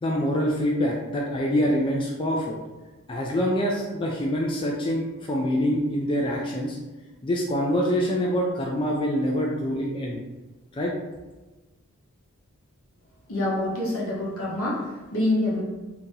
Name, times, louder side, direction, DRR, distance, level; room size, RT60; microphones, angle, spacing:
voice 1, 0.0-2.6 3.1-6.8 7.2-10.2 10.7-10.9, equal, 20° left, -2 dB, 0.3 m, -25 dB
voice 2, 13.3-15.6, left 1 dB, 65° left, -4 dB, 1.0 m, -26 dB
2.8 x 2.7 x 3.6 m, 1.2 s
head